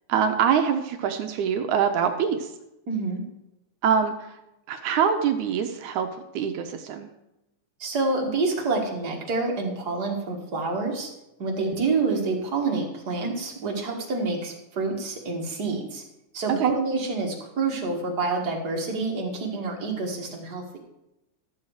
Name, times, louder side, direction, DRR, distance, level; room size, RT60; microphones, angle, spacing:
voice 1, 0.1-2.5 3.8-4.4 4.7-7.1 11.6-11.9 16.5-16.8, right 7 dB, 75° right, 7 dB, 2.0 m, -24 dB
voice 2, 2.9-3.2 7.8-11.1 11.4-16.0 16.3-20.8, right 3 dB, 40° right, 0 dB, 1.6 m, -27 dB
12.5 x 7.4 x 4.8 m, 0.91 s
omnidirectional pair, 3.7 m